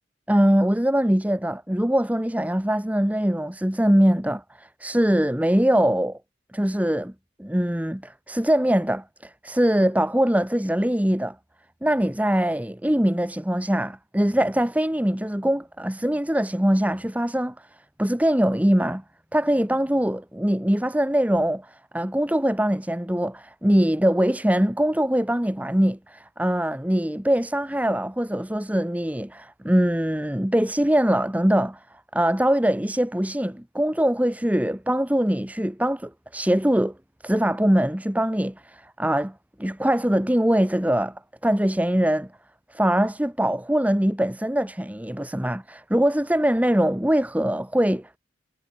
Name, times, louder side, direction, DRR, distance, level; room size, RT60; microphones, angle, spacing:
voice 1, 0.3-6.2 6.5-7.1 7.4-11.4 11.8-17.7 18.0-19.0 19.3-31.8 32.1-36.9 37.2-39.3 39.6-42.3 42.7-48.2, equal, 10° right, 1.1 m, -22 dB
head